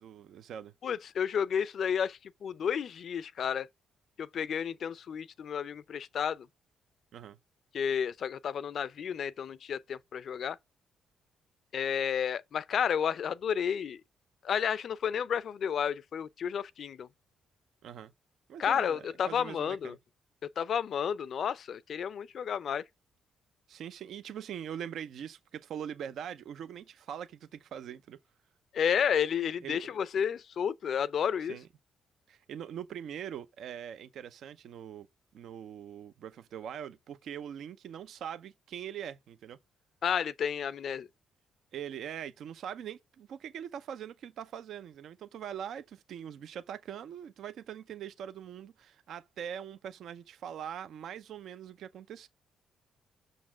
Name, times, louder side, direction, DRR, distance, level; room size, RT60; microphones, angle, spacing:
voice 1, 0.0-0.7 7.1-7.4 17.8-18.1 18.5-20.0 23.7-28.2 29.6-29.8 31.5-31.7 32.3-35.1 35.3-39.6 41.7-52.3, right 9 dB, 70° right, 0.6 m, -42 dB
voice 2, 0.8-3.7 4.2-6.5 7.7-10.6 11.7-14.0 14.4-17.1 18.6-19.9 20.4-22.8 28.7-31.6 40.0-41.1, left 8 dB, 60° left, 0.5 m, -31 dB
6.3 x 4.1 x 6.0 m
cardioid pair, 90°, 0 cm